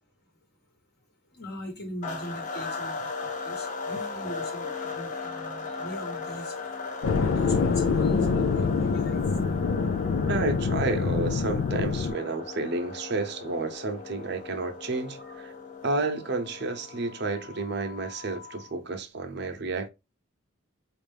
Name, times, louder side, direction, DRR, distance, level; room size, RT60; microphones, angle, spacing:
voice 1, 1.3-6.5 7.2-9.2 9.8-9.9 15.2-15.4, equal, 55° left, 1.1 m, -41 dB
sound 1, 2.0-18.7, left 4 dB, 40° left, 0.6 m, -38 dB
sound 2, 7.0-12.1, left 5 dB, 90° left, 0.4 m, -25 dB
voice 2, 10.3-15.5 15.8-19.9, right 3 dB, 60° right, 0.8 m, -31 dB
4.4 x 2.5 x 3.4 m
head